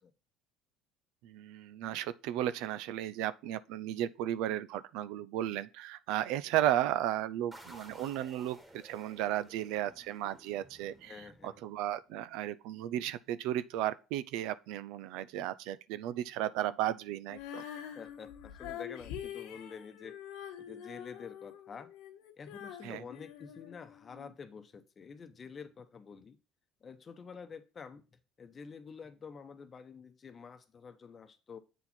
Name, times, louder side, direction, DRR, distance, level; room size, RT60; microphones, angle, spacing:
voice 1, 1.2-11.1 11.4-17.6 22.8-23.0, right 12 dB, 75° right, 0.4 m, -34 dB
sound 1, 7.5-12.0, right 1 dB, 10° right, 1.7 m, -55 dB
voice 2, 11.0-11.6 17.7-20.2 20.6-21.9 22.4-26.4 26.8-31.6, left 6 dB, 30° left, 0.8 m, -48 dB
Female singing, 17.3-24.3, left 10 dB, 80° left, 1.2 m, -45 dB
8.1 x 4.4 x 4.3 m
cardioid pair, 120°, 0 cm